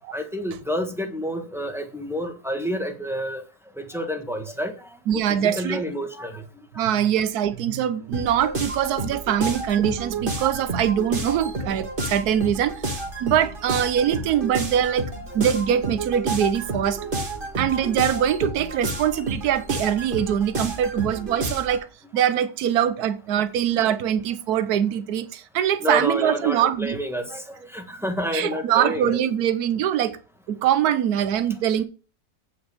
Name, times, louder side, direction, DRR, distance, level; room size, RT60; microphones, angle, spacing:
voice 1, 0.1-3.4 3.8-6.4 6.7-6.9 14.8-14.9 16.7-17.1 21.3-21.4 25.8-29.2, equal, ahead, 4 dB, 1.0 m, -29 dB
voice 2, 5.1-5.8 6.8-12.8 13.2-15.1 15.3-17.0 17.5-21.9 22.1-27.0 28.3-30.2 30.5-31.8, right 10 dB, 75° right, 13 dB, 1.3 m, -23 dB
sound 1, 8.1-21.8, right 2 dB, 35° right, 1.6 m, -30 dB
8.8 x 5.4 x 6.7 m, 0.37 s
omnidirectional pair, 1.7 m